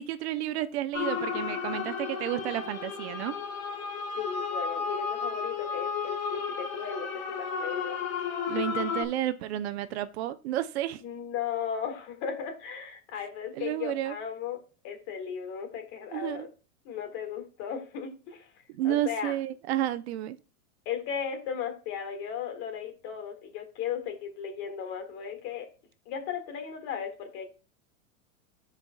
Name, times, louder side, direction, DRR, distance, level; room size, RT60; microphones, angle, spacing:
voice 1, 0.0-3.4 8.5-11.0 13.5-14.2 16.1-16.5 18.7-20.4, right 13 dB, 50° right, 0.6 m, -31 dB
sound 1, 0.9-9.0, left 6 dB, 80° left, 1.8 m, -33 dB
voice 2, 4.2-8.0 11.0-14.6 14.8-16.5 16.9-18.5 18.8-19.4 20.9-25.7 26.1-27.5, left 7 dB, 40° left, 1.8 m, -36 dB
13.0 x 4.8 x 2.2 m
hypercardioid pair, 140°, 41 cm